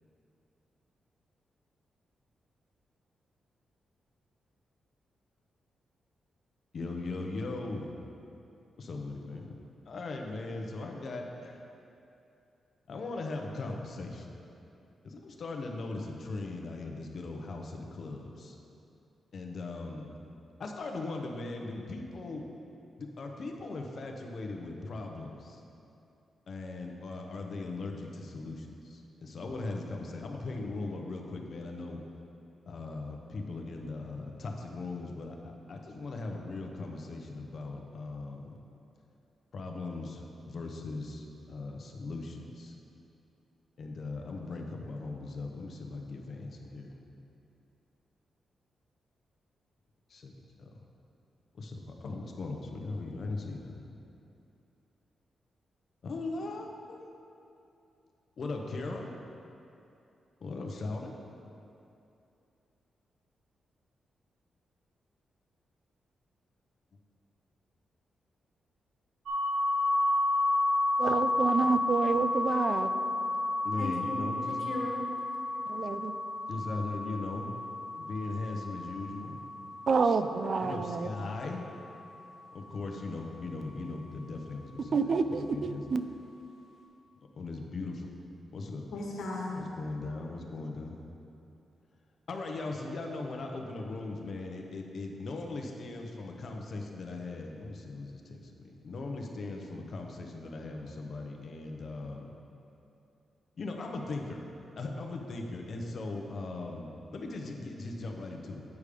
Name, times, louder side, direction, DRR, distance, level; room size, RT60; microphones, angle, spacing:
voice 1, 6.7-7.9 8.8-9.5 9.9-11.6 12.9-14.4 15.0-18.6 19.3-20.1 20.6-22.4 23.0-25.6 26.5-32.0 32.7-38.5 39.5-42.7 43.8-46.9 50.1-50.3 50.6-50.8 51.5-53.9 56.0-57.1 58.4-59.1 60.4-61.1 73.6-74.6 76.5-77.5 78.0-79.4 80.6-81.7 82.5-85.8 87.4-87.9 88.5-88.8 89.5-91.0 92.3-102.3 103.6-104.4 104.8-108.6, left 3 dB, 45° left, 2 dB, 0.7 m, -39 dB
sound 1, 69.3-81.0, left 2 dB, 70° right, 1.3 m, -31 dB
voice 2, 71.0-72.9 75.7-76.2 79.9-81.4 84.9-86.0, right 4 dB, 45° right, 9 dB, 0.3 m, -29 dB
voice 3, 73.8-75.1 88.9-89.6, left 2 dB, 85° left, -2 dB, 1.3 m, -36 dB
8.3 x 5.1 x 5.0 m, 2.7 s
wide cardioid pair, 160°, 0 cm